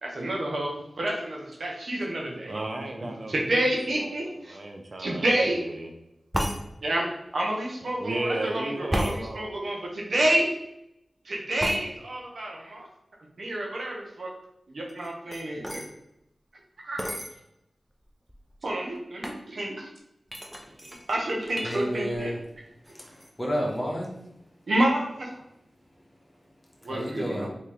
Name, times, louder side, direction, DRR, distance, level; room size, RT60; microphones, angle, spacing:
voice 1, 0.0-2.5 3.3-4.6 5.0-5.6 6.8-10.5 11.2-12.9 13.4-14.3 14.7-15.8 16.8-17.1 18.6-19.9 21.1-22.3 24.7-25.3 26.8-27.5, right 1 dB, 75° right, -1 dB, 0.8 m, -29 dB
voice 2, 2.4-3.6 4.0-5.9 7.8-9.6, right 1 dB, 55° right, 2 dB, 0.5 m, -34 dB
sound 1, 6.3-6.6 8.9-9.2 11.6-11.8 14.9-15.9 17.0-17.3 18.0-18.1 18.3-18.7 19.2-19.4 20.3-21.8 22.1-22.5 22.8-23.3, equal, 5° right, 0.6 m, -32 dB
voice 3, 21.6-22.4 23.1-24.1 26.9-27.5, equal, 30° left, -2 dB, 1.2 m, -30 dB
3.4 x 2.9 x 3.4 m, 0.83 s
cardioid pair, 40°, 0 cm